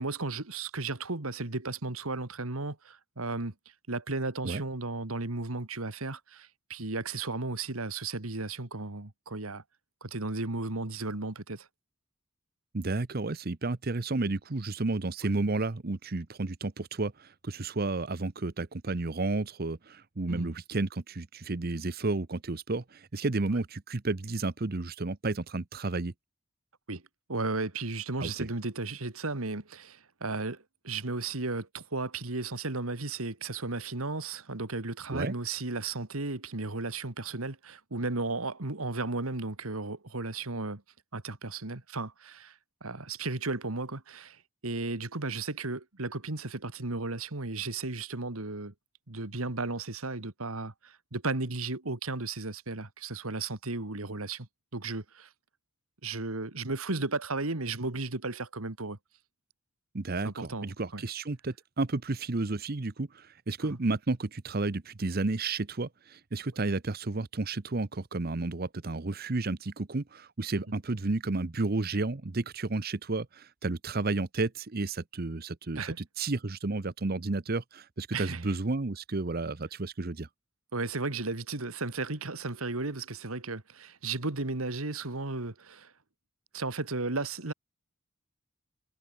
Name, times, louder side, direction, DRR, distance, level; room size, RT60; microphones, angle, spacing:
voice 1, 0.0-3.5 3.9-9.6 10.0-11.7 20.3-20.5 26.9-27.0 27.3-40.8 41.1-48.7 49.1-55.3 56.0-59.0 60.2-61.0 63.6-63.8 75.8-76.0 78.1-78.4 80.7-85.9 86.5-87.5, right 3 dB, 85° right, 2.2 m, -34 dB
voice 2, 12.7-26.1 28.2-28.3 35.1-35.3 59.9-80.3, right 3 dB, 45° right, 0.8 m, -32 dB
head